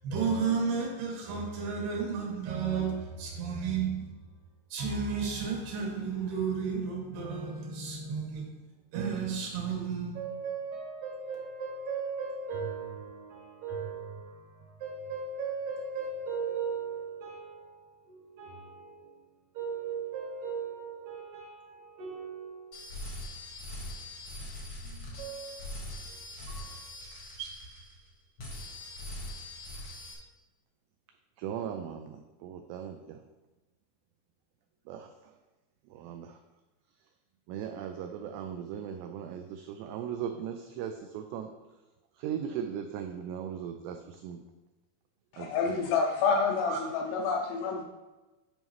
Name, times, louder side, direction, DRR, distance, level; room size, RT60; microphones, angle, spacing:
voice 1, 0.0-4.1 4.7-8.5 8.9-19.2 19.5-22.9 24.8-25.8 26.1-26.2 26.5-26.8 27.4-27.9, right 5 dB, 65° right, 3.3 m, -35 dB
sound 1, 22.7-28.1 28.4-30.1, left 1 dB, 65° left, 1.3 m, -42 dB
voice 2, 31.4-33.2 34.9-35.3 35.9-36.4 37.5-41.5 42.1-44.4 45.4-46.1 46.4-47.0, right 8 dB, 90° right, 2.4 m, -38 dB
voice 3, 45.3-47.8, left 5 dB, 85° left, 2.4 m, -28 dB
10.0 x 5.4 x 3.1 m
omnidirectional pair, 5.4 m